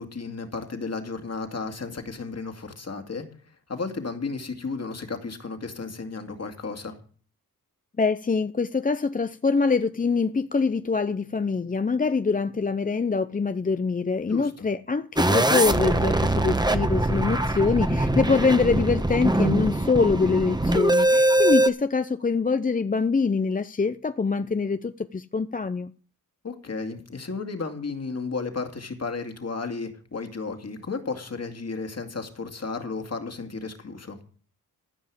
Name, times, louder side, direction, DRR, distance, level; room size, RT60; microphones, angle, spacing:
voice 1, 0.0-3.2 3.7-6.9 14.3-14.5 26.4-34.2, left 4 dB, 45° left, 2.3 m, -33 dB
voice 2, 8.0-25.9, left 4 dB, 20° left, 0.6 m, -24 dB
sound 1, 15.2-21.7, right 1 dB, 10° right, 1.1 m, -22 dB
14.0 x 5.5 x 7.5 m
cardioid pair, 55°, 37 cm